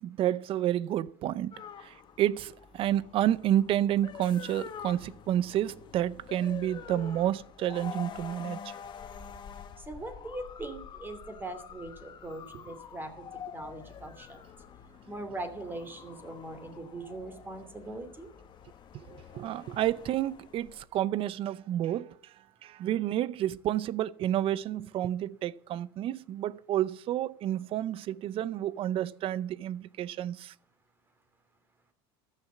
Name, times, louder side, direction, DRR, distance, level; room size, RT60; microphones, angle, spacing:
voice 1, 0.0-1.5 1.8-8.7 18.9-19.0 19.3-22.1 22.6-30.5, right 12 dB, 45° right, 0.6 m, -30 dB
sound 1, 1.5-20.9, left 7 dB, 35° left, 1.5 m, -47 dB
voice 2, 9.8-13.3 13.5-14.4 15.1-18.3, right 2 dB, 15° right, 2.8 m, -41 dB
14.0 x 6.6 x 8.2 m
supercardioid pair, 110°, 13 cm